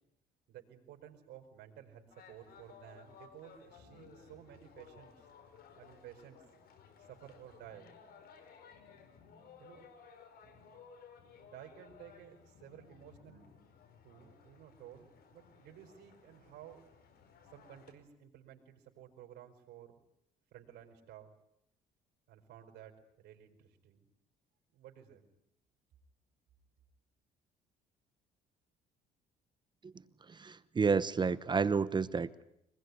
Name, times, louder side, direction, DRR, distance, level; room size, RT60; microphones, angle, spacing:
voice 1, 0.5-5.3 5.7-6.4 7.0-8.0 9.6-9.9 11.4-13.5 14.0-16.8 17.4-20.0 20.5-21.3 22.3-24.1 24.7-25.3, right 10 dB, 75° right, 3 dB, 4.9 m, -54 dB
sound 1, 2.1-17.9, left 6 dB, 65° left, 5.1 m, -58 dB
voice 2, 30.3-32.4, right 5 dB, 25° right, 16 dB, 1.0 m, -31 dB
25.5 x 20.5 x 9.8 m, 0.77 s
cardioid pair, 110°, 17 cm